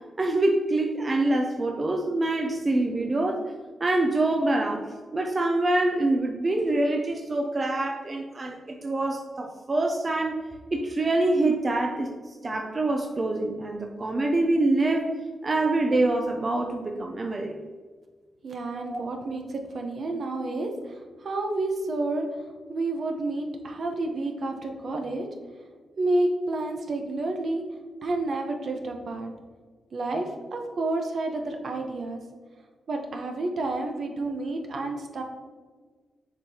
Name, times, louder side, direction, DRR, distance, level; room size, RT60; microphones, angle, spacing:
voice 1, 0.2-3.4 3.8-10.4 10.7-12.1 12.4-15.1 15.4-17.5 18.7-19.0, right 2 dB, 35° right, 2 dB, 0.6 m, -25 dB
voice 2, 18.4-22.2 22.7-25.3 26.0-27.6 28.0-29.3 29.9-32.2 32.9-35.2, right 2 dB, 60° right, 3 dB, 0.9 m, -30 dB
7.1 x 4.7 x 2.8 m, 1.5 s
cardioid pair, 100°, 0 cm